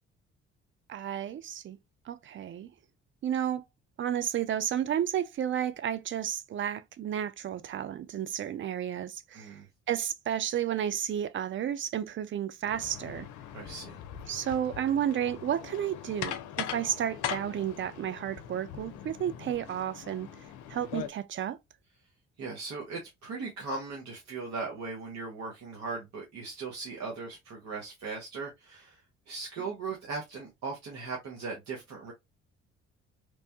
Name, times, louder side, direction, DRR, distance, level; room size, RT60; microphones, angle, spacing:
voice 1, 0.9-1.8 2.1-2.7 3.2-3.6 4.0-9.6 9.9-13.3 14.3-20.3 20.7-21.6 29.6-29.7, right 10 dB, 40° right, 0.4 m, -32 dB
voice 2, 9.3-9.7 13.5-14.0 22.4-29.0 29.3-32.1, right 4 dB, 55° right, 1.0 m, -38 dB
sound 1, 12.7-21.1, left 10 dB, 65° left, 0.5 m, -41 dB
3.1 x 2.2 x 2.7 m
hypercardioid pair, 50°, 32 cm